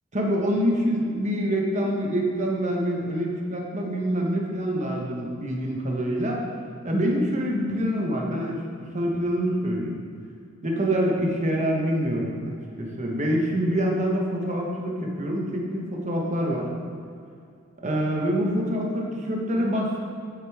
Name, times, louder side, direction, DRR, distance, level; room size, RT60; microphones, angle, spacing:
voice 1, 0.1-6.4 6.8-8.6 8.9-10.0 10.6-12.3 12.8-16.7 17.8-20.0, equal, 35° right, -1 dB, 1.3 m, -25 dB
8.8 x 8.2 x 3.6 m, 2.4 s
head